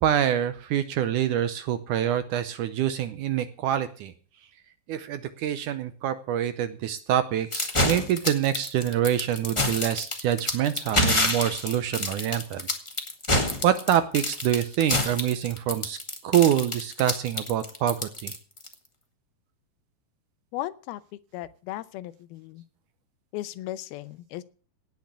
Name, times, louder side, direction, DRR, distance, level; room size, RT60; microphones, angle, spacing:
voice 1, 0.0-4.1 4.9-12.7 13.3-16.0 16.2-18.4, right 10 dB, 75° right, 12 dB, 1.9 m, -26 dB
sound 1, 7.5-18.7, left 1 dB, 25° left, 0.6 m, -27 dB
voice 2, 20.5-21.0 21.3-22.6 23.3-24.4, left 15 dB, 90° left, 15 dB, 2.7 m, -36 dB
18.0 x 6.5 x 8.3 m, 0.41 s
omnidirectional pair, 4.3 m